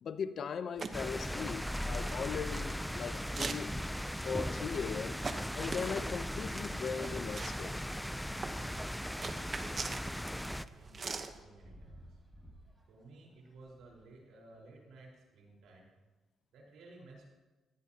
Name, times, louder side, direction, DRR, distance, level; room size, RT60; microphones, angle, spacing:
voice 1, 0.0-3.8 4.2-5.2 5.6-7.8, left 6 dB, 55° left, 12 dB, 0.8 m, -39 dB
sound 1, 0.8-11.4, right 4 dB, 40° right, 1.1 m, -45 dB
sound 2, 0.9-10.6, equal, 5° left, 0.5 m, -38 dB
sound 3, 7.7-14.1, right 1 dB, 15° right, 3.9 m, -61 dB
voice 2, 9.3-12.2 12.9-15.9 16.5-17.3, right 2 dB, 80° right, -2 dB, 4.7 m, -56 dB
18.0 x 15.5 x 2.9 m, 1.2 s
cardioid pair, 90°, 0 cm